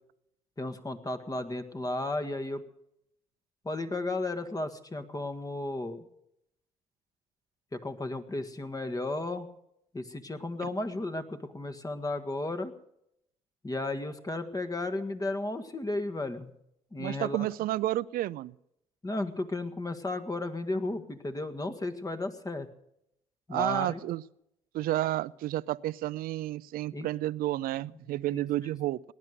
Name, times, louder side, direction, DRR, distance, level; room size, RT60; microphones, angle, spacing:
voice 1, 0.6-2.6 3.6-6.1 7.7-9.5 9.9-12.7 13.6-16.5 16.9-17.5 19.0-22.7 23.5-24.0 26.9-27.1 28.1-28.4, left 2 dB, 20° left, 8 dB, 1.7 m, -34 dB
voice 2, 17.0-18.5 23.5-24.2 24.7-29.1, right 15 dB, 65° right, 20 dB, 0.5 m, -31 dB
19.0 x 11.0 x 6.6 m, 0.78 s
hypercardioid pair, 50°, 16 cm